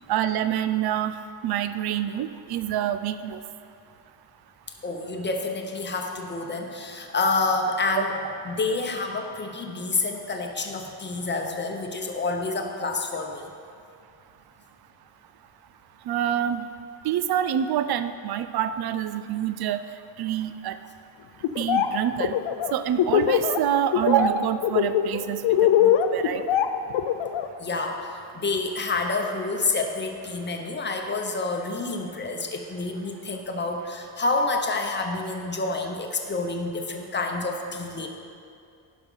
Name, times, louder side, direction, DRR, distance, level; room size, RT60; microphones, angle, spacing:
voice 1, 0.1-1.2 1.4-3.4 16.1-16.6 17.0-19.8 20.2-20.8 21.6-22.3 22.7-26.4, right 10 dB, 50° right, 12 dB, 0.5 m, -26 dB
voice 2, 4.8-13.5 27.6-38.1, left 3 dB, 20° left, 3 dB, 0.9 m, -28 dB
Laughter, 21.4-21.9 22.2-23.6 23.9-24.3 24.6-27.5, left 10 dB, 65° left, 0.6 m, -21 dB
11.0 x 5.4 x 5.5 m, 2.4 s
cardioid pair, 130°, 49 cm